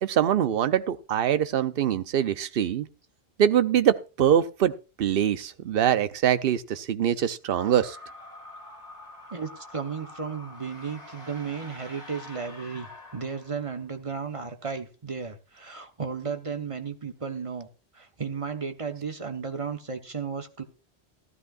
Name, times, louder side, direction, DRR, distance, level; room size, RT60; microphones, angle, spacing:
voice 1, 0.0-2.9 3.4-4.7 5.0-8.0, right 9 dB, 60° right, 0.8 m, -23 dB
sound 1, 7.4-13.9, left 1 dB, 35° left, 2.8 m, -46 dB
voice 2, 9.3-17.7 17.9-20.6, right 5 dB, 30° right, 1.0 m, -34 dB
15.0 x 12.5 x 2.4 m
omnidirectional pair, 1.1 m